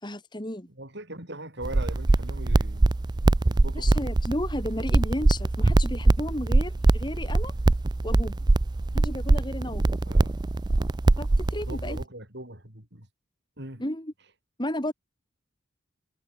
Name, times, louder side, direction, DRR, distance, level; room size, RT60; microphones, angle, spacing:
voice 1, 0.0-0.7 3.7-7.5 8.0-8.4 8.9-10.0 11.2-12.0 13.8-14.1 14.6-14.9, left 1 dB, 20° left, 3.3 m, -33 dB
voice 2, 0.7-2.9 3.5-4.1 10.1-10.4 11.7-13.1 13.6-13.8, right 1 dB, 55° right, 7.8 m, -40 dB
sound 1, 1.6-12.0, right 2 dB, 20° right, 0.4 m, -23 dB
head